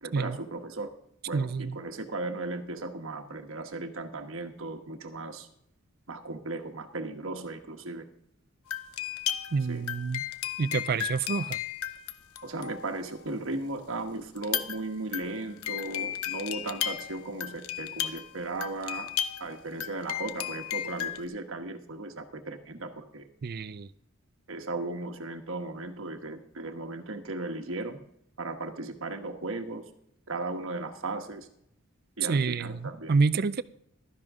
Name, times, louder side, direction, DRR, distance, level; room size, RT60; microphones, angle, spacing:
voice 1, 0.0-0.9 1.3-5.5 6.1-8.0 9.7-9.8 12.4-19.1 19.4-23.3 24.5-28.0 28.4-29.9 30.3-31.5 32.2-33.1, right 2 dB, 70° right, 1.2 m, -36 dB
voice 2, 1.3-1.8 9.5-10.2 10.6-11.6 23.4-23.9 32.3-33.6, right 4 dB, 45° right, 0.4 m, -28 dB
sound 1, 8.7-13.3 14.4-21.2, left 10 dB, 90° left, 0.6 m, -35 dB
12.5 x 10.5 x 3.7 m
head